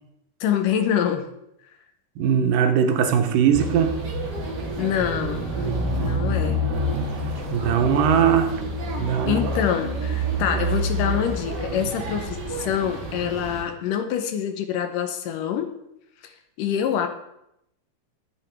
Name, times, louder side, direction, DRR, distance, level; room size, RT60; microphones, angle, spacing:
voice 1, 0.4-1.2 4.8-5.7 6.0-6.6 9.3-15.7 16.2-16.3 16.6-17.1, left 9 dB, 80° left, 2.6 m, -25 dB
voice 2, 2.2-4.0 7.3-8.6 9.0-9.5, right 8 dB, 90° right, 2.7 m, -20 dB
sound 1, 3.5-13.6, equal, 40° right, 1.8 m, -28 dB
13.5 x 7.7 x 4.6 m
omnidirectional pair, 3.8 m